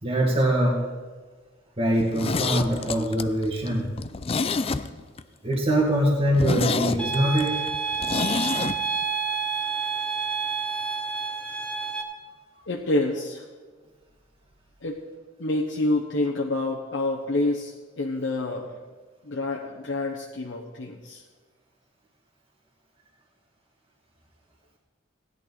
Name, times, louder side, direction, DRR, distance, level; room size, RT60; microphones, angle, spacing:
voice 1, 0.0-0.9 1.8-3.9 5.4-7.6, right 1 dB, 30° right, -5 dB, 1.8 m, -23 dB
Zipper (clothing), 1.9-5.2 5.5-5.6 6.0-6.1 6.3-8.8 9.0-9.1, left 4 dB, 30° left, 0.4 m, -28 dB
sound 1, 7.0-12.0, right 6 dB, 5° left, 1.2 m, -29 dB
voice 2, 12.7-13.4 14.8-15.0 15.4-18.8 19.2-21.2, left 2 dB, 70° left, -2 dB, 1.1 m, -27 dB
16.5 x 10.5 x 4.0 m, 1.4 s
head